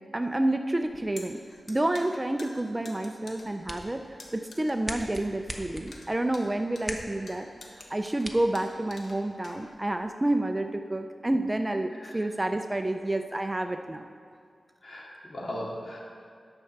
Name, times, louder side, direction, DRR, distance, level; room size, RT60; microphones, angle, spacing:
voice 1, 0.1-1.4 1.7-14.1, right 1 dB, 20° right, 7 dB, 0.4 m, -29 dB
sound 1, 0.8-10.0, left 2 dB, 65° left, 1.4 m, -49 dB
sound 2, 3.3-9.3, equal, 5° right, 0.9 m, -43 dB
voice 2, 14.8-16.0, left 1 dB, 50° left, -4 dB, 2.4 m, -38 dB
10.5 x 5.7 x 6.7 m, 2.2 s
wide cardioid pair, 95°, 0 cm